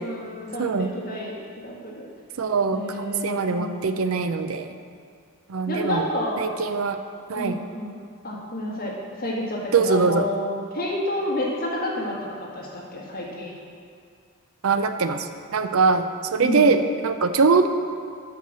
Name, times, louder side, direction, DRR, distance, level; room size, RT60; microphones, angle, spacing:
voice 1, 0.0-1.4 1.6-2.1 2.7-3.9 5.7-6.4 7.3-8.0 8.2-13.5 16.4-16.7, left 1 dB, 40° left, -4 dB, 1.9 m, -30 dB
voice 2, 2.4-4.7 5.5-6.1 6.4-7.0 7.3-7.6 9.7-10.3 14.6-17.7, right 4 dB, 70° right, 9 dB, 0.5 m, -22 dB
8.3 x 6.5 x 6.2 m, 2.3 s
head